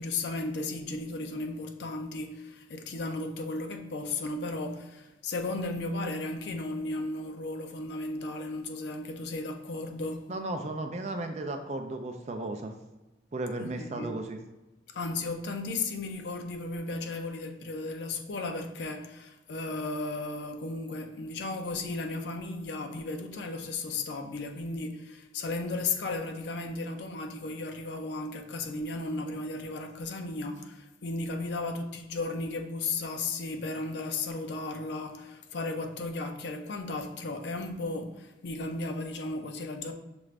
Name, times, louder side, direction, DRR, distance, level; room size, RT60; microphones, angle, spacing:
voice 1, 0.0-10.3 13.6-14.1 14.9-39.9, left 2 dB, 70° left, 0.5 m, -35 dB
voice 2, 10.3-12.7 13.3-14.4, right 2 dB, 35° right, 0.4 m, -35 dB
6.0 x 2.5 x 3.2 m
head